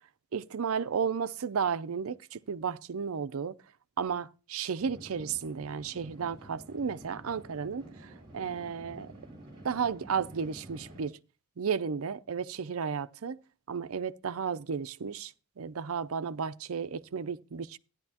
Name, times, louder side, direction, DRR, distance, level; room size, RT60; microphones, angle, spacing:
voice 1, 0.3-3.6 4.0-9.1 9.6-11.2 11.6-13.4 13.7-17.8, right 6 dB, 75° right, 0.5 m, -33 dB
sound 1, 4.8-11.1, right 1 dB, 25° right, 3.7 m, -50 dB
14.0 x 10.5 x 2.8 m
head